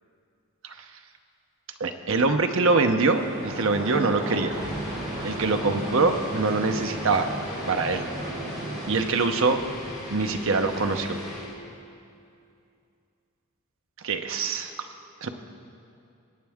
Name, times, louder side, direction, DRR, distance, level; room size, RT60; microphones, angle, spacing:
voice 1, 1.8-4.6 5.2-7.3 7.7-8.0 8.9-9.6 10.1-11.1 14.0-14.7 15.2-15.3, right 3 dB, 65° right, 6 dB, 0.7 m, -24 dB
Beergarden in a back yard - Stereo Ambience, 3.1-8.9, right 1 dB, 40° right, 3.6 m, -35 dB
sound 1, 4.5-11.6, left 1 dB, 15° left, 2.8 m, -39 dB
22.5 x 8.7 x 3.6 m, 2.5 s
head